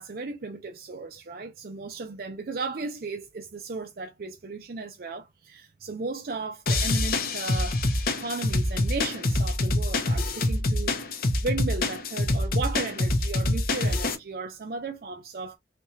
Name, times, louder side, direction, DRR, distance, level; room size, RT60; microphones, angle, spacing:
voice 1, 0.0-7.8 8.1-11.0 11.4-15.6, right 3 dB, 55° right, 0.5 m, -35 dB
sound 1, 6.7-14.2, left 2 dB, 55° left, 0.8 m, -26 dB
4.4 x 2.4 x 2.6 m
head